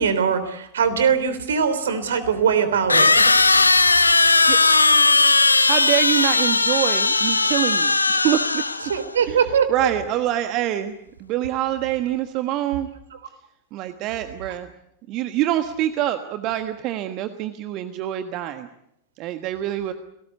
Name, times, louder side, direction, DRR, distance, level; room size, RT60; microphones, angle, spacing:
voice 1, 0.0-3.3 8.9-9.7 13.1-13.2, right 7 dB, 65° right, 12 dB, 3.5 m, -21 dB
sound 1, 1.3-1.4 2.9-9.0, left 3 dB, 80° left, 1.1 m, -17 dB
voice 2, 5.7-7.9 8.2-8.6 9.3-9.4 9.7-10.9 11.2-12.9 13.7-14.7 15.1-18.7 19.2-19.9, right 13 dB, 40° right, 9 dB, 1.4 m, -25 dB
29.5 x 19.0 x 8.2 m, 0.81 s
figure-of-eight pair, 90°, 0 cm